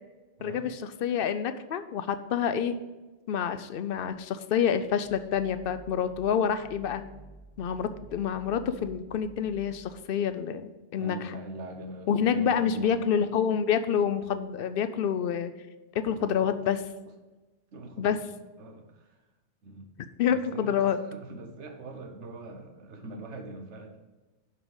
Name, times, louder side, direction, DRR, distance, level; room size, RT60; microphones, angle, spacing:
voice 1, 0.4-0.7 1.0-2.8 3.3-7.0 7.6-11.2 12.1-15.5 15.9-16.8 18.0-18.2 20.2-21.0, left 8 dB, 60° left, 11 dB, 0.6 m, -27 dB
sound 1, 4.7-10.1, right 2 dB, 15° right, 0.5 m, -52 dB
voice 2, 11.0-13.3 15.9-16.6 17.7-18.3 18.6-19.2 19.6-19.9 20.3-24.0, right 2 dB, 70° right, 5 dB, 1.3 m, -43 dB
5.8 x 5.6 x 6.2 m, 1.2 s
omnidirectional pair, 1.2 m